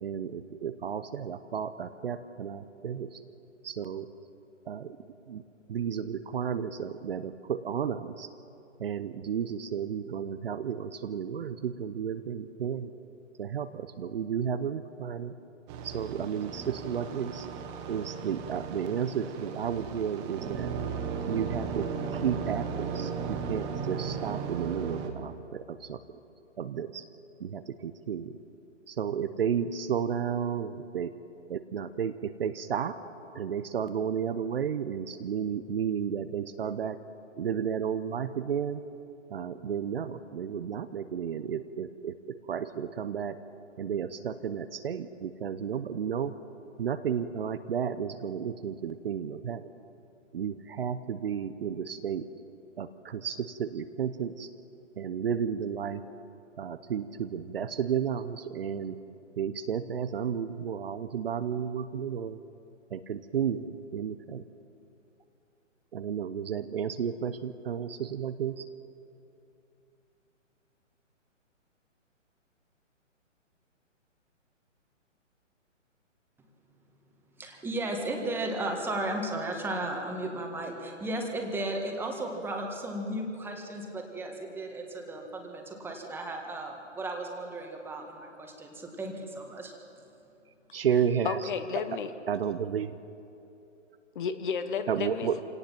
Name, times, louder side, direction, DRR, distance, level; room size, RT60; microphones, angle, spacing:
voice 1, 0.0-3.2 3.6-4.1 4.7-5.0 5.3-5.4 5.7-8.3 8.8-12.9 13.4-15.3 15.8-17.5 17.9-20.7 21.3-26.0 26.6-27.0 27.4-28.4 28.9-31.1 31.5-33.0 33.3-37.0 37.4-38.8 39.3-43.4 43.8-46.3 46.8-49.7 50.3-52.3 52.8-54.5 55.0-56.0 56.6-59.0 59.4-62.4 62.9-64.4 65.9-68.7 90.7-91.4 92.3-92.9 94.9-95.4, right 8 dB, 50° right, 12 dB, 0.8 m, -32 dB
sound 1, 15.7-25.1, right 6 dB, 20° right, 1.4 m, -36 dB
voice 2, 77.4-89.7, right 1 dB, 5° right, 2 dB, 1.7 m, -35 dB
voice 3, 91.2-92.1 94.1-95.4, left 7 dB, 40° left, 10 dB, 1.1 m, -32 dB
26.5 x 18.0 x 5.9 m, 2.7 s
figure-of-eight pair, 135°, 38 cm